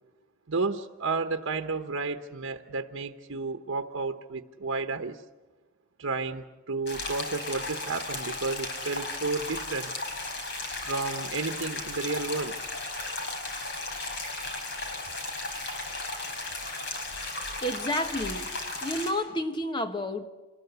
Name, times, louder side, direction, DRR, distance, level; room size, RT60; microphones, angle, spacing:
voice 1, 0.5-5.2 6.0-9.9 10.7-12.6, right 4 dB, 85° right, 1.0 m, -32 dB
sound 1, 6.9-19.1, left 2 dB, 55° left, 5.1 m, -35 dB
voice 2, 17.6-18.5 18.8-20.3, left 1 dB, 25° left, 1.3 m, -30 dB
27.0 x 20.5 x 8.0 m
head